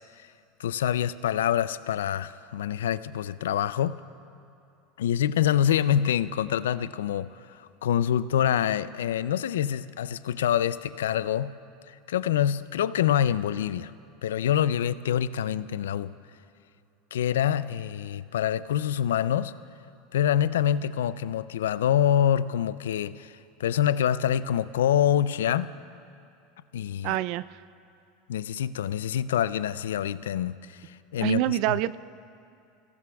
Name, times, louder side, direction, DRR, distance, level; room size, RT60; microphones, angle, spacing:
voice 1, 0.6-4.0 5.0-11.5 11.9-13.9 14.2-16.1 17.1-19.5 20.1-25.7 26.7-27.1 28.3-31.8, left 10 dB, 85° left, 16 dB, 0.4 m, -26 dB
voice 2, 27.0-27.6 31.2-31.9, right 15 dB, 60° right, 17 dB, 0.4 m, -26 dB
28.5 x 17.0 x 2.3 m, 2.5 s
hypercardioid pair, 95°, 0 cm